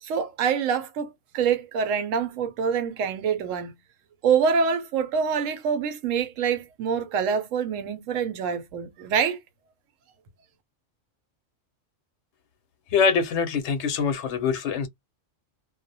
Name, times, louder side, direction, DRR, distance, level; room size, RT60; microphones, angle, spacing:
voice 1, 0.0-3.7 4.2-9.4, right 6 dB, 85° right, 1.0 m, -25 dB
voice 2, 12.9-14.9, left 6 dB, 70° left, 0.8 m, -24 dB
2.3 x 2.1 x 2.6 m
omnidirectional pair, 1.3 m